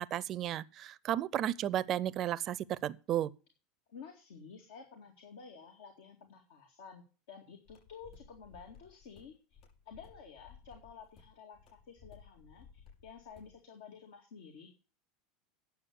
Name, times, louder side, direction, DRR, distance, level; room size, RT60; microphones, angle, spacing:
voice 1, 0.0-3.3, right 12 dB, 45° right, 0.6 m, -33 dB
voice 2, 3.9-9.4 9.9-14.7, left 6 dB, 75° left, 2.1 m, -52 dB
sound 1, 7.7-13.6, left 6 dB, 50° left, 6.4 m, -58 dB
9.5 x 7.1 x 8.1 m
hypercardioid pair, 90°, 0 cm